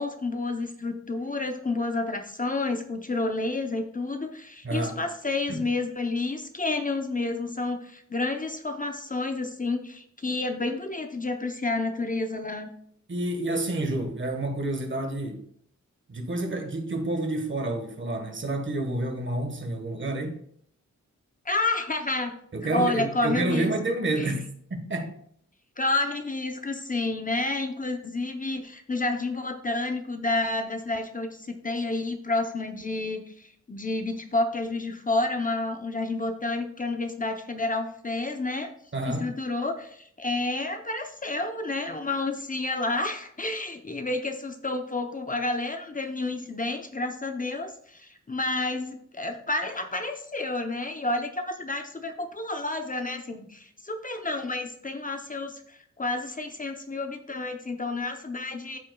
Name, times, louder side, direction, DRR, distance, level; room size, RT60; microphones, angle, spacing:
voice 1, 0.0-12.7 21.5-22.3 22.7-24.3 25.8-38.7 39.1-58.8, left 2 dB, 25° left, 0.7 m, -30 dB
voice 2, 4.6-5.0 5.5-5.7 13.1-15.4 16.1-20.4 22.5-25.2 38.9-39.3, right 2 dB, 40° right, 1.4 m, -29 dB
13.5 x 5.5 x 2.3 m
wide cardioid pair, 120°, 30 cm